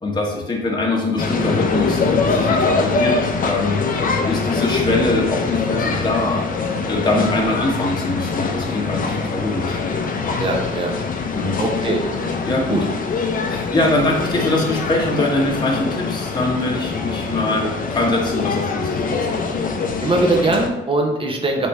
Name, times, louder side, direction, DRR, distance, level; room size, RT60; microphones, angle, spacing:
voice 1, 0.0-3.8 4.3-6.4 6.8-9.8 11.3-11.6 12.4-12.8 13.5-19.1, left 2 dB, 20° left, -2 dB, 1.0 m, -22 dB
sound 1, 1.2-20.7, left 4 dB, 45° left, 0.6 m, -23 dB
voice 2, 10.4-10.9 11.6-12.1 12.7-12.8 20.0-21.7, right 2 dB, 25° right, 1 dB, 0.9 m, -21 dB
3.5 x 3.2 x 4.1 m, 0.97 s
cardioid pair, 90°, 20 cm